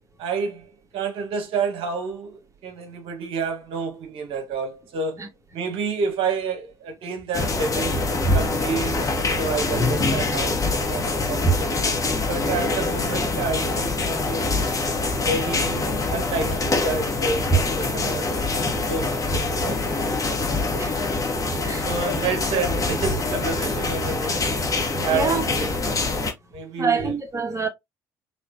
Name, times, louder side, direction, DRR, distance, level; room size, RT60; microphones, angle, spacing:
voice 1, 0.2-5.3 5.5-8.0 8.3-10.6 10.9-11.8 12.3-14.5 15.2-18.3 18.7-20.6 21.8-24.5 25.0-25.7 26.5-27.2, right 4 dB, 65° right, 1.5 m, -29 dB
sound 1, 7.3-26.3, left 2 dB, 35° left, 1.7 m, -24 dB
voice 2, 20.8-21.1 21.6-21.9 25.1-25.4 26.8-27.7, right 4 dB, 30° right, 1.9 m, -26 dB
4.1 x 3.1 x 2.7 m
hypercardioid pair, 55°, 10 cm